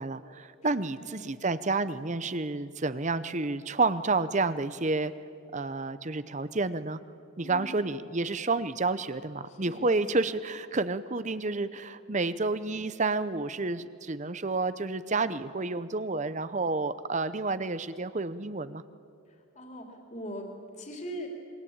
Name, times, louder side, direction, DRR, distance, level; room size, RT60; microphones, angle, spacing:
voice 1, 0.0-5.1 5.5-7.0 7.4-18.8, right 3 dB, 35° right, 14 dB, 0.7 m, -30 dB
voice 2, 1.0-1.4 7.4-7.8 9.5-10.2 19.5-21.3, equal, 35° left, 2 dB, 3.4 m, -41 dB
26.5 x 22.5 x 8.8 m, 2.5 s
head